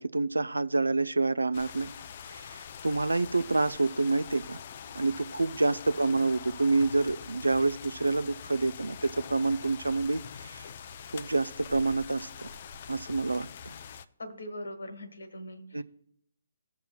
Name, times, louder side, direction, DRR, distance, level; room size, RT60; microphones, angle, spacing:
voice 1, 0.0-1.9 2.3-4.6 5.0-10.6 11.1-12.5 12.9-13.7 15.7-15.8, right 3 dB, 80° right, 0.3 m, -28 dB
sound 1, 1.5-14.1, left 7 dB, 45° left, 0.4 m, -44 dB
voice 2, 14.2-15.8, equal, 70° left, 1.4 m, -41 dB
16.5 x 6.8 x 2.2 m
figure-of-eight pair, 135°, 0 cm